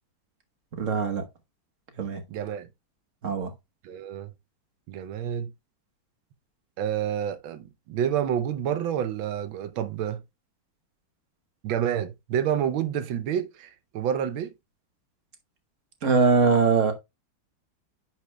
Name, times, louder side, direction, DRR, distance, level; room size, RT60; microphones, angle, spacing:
voice 1, 0.7-1.2 2.0-2.2 3.2-3.5 16.0-16.9, right 5 dB, 45° right, 1.3 m, -22 dB
voice 2, 2.3-2.7 3.8-4.3 4.9-5.5 6.8-10.2 11.6-14.5, right 9 dB, 80° right, 1.5 m, -29 dB
10.0 x 6.3 x 2.2 m
omnidirectional pair, 2.2 m